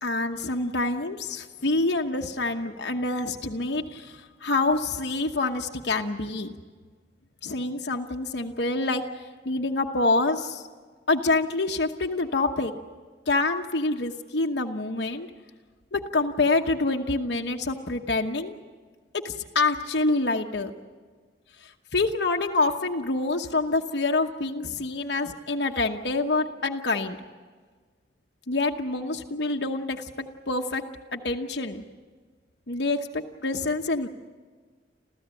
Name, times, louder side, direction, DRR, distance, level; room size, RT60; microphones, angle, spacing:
voice 1, 0.0-6.5 7.4-10.6 11.1-12.7 13.3-15.3 15.9-18.6 19.2-20.7 21.6-27.2 28.5-30.8 31.1-31.8 32.7-34.1, left 3 dB, 65° left, 2 dB, 1.1 m, -26 dB
28.0 x 15.0 x 9.0 m, 1.5 s
head